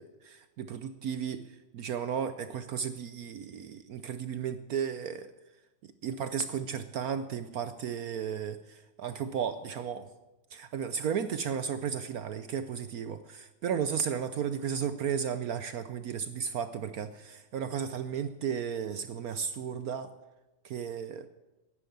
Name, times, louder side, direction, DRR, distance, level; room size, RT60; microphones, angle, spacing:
voice 1, 0.0-5.3 5.8-10.1 10.5-20.1 20.7-21.3, right 7 dB, 65° right, 11 dB, 0.9 m, -34 dB
11.0 x 9.8 x 9.8 m, 1.0 s
omnidirectional pair, 2.2 m